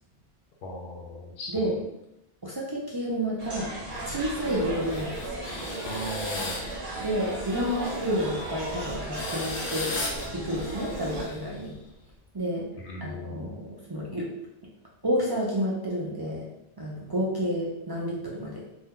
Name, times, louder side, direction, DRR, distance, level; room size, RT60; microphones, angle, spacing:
voice 1, 0.6-1.7 5.8-6.6 12.8-13.6, equal, 65° left, -1 dB, 0.8 m, -37 dB
voice 2, 2.4-3.7 4.0-5.3 7.0-10.0 10.3-11.7 12.3-12.7 13.0-14.3 15.0-16.5 16.8-18.6, equal, 35° right, -5 dB, 0.4 m, -30 dB
sound 1, 3.4-11.2, right 2 dB, 55° right, 0.8 m, -36 dB
sound 2, 3.9-11.9, left 2 dB, 90° left, 1.0 m, -38 dB
2.6 x 2.2 x 3.6 m, 0.85 s
omnidirectional pair, 1.1 m